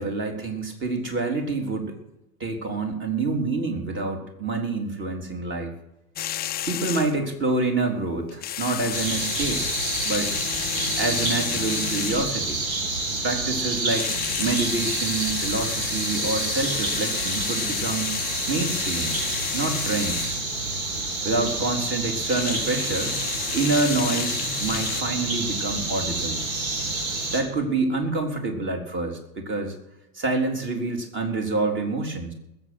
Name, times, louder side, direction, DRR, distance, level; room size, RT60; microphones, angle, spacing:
voice 1, 0.0-2.0 2.4-5.7 6.7-9.6 10.0-10.4 11.0-12.6 13.2-14.1 14.4-18.1 18.5-19.2 19.5-20.4 21.2-23.2 23.5-26.4 27.3-29.8 30.1-32.3, right 3 dB, 25° right, 3 dB, 3.9 m, -27 dB
sound 1, 6.2-7.3 8.3-12.5 13.8-20.4 22.1-25.0, left 12 dB, 20° left, 0.5 m, -31 dB
sound 2, 8.9-27.4, right 3 dB, 70° right, 4.3 m, -28 dB
20.5 x 8.1 x 6.2 m, 0.83 s
hypercardioid pair, 105°, 42 cm